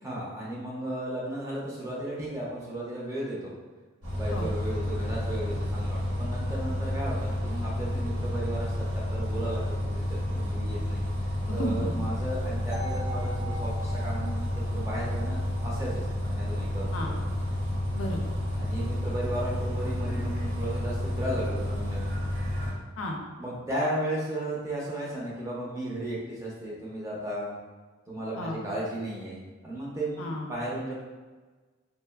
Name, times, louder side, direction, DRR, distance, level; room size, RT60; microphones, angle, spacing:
voice 1, 0.0-3.5 4.1-17.1 18.6-22.1 23.4-27.5 28.1-30.9, right 1 dB, 15° right, -5 dB, 0.5 m, -35 dB
Bus, 4.0-22.7, left 1 dB, 70° right, 1.1 m, -30 dB
voice 2, 11.5-12.1 16.9-17.1 17.9-18.2 23.0-23.2 28.4-28.6 30.2-30.5, left 1 dB, 85° left, 1 dB, 0.4 m, -33 dB
sound 1, 12.7-16.7, equal, 55° right, 0.8 m, -43 dB
3.0 x 2.2 x 2.2 m, 1.3 s
head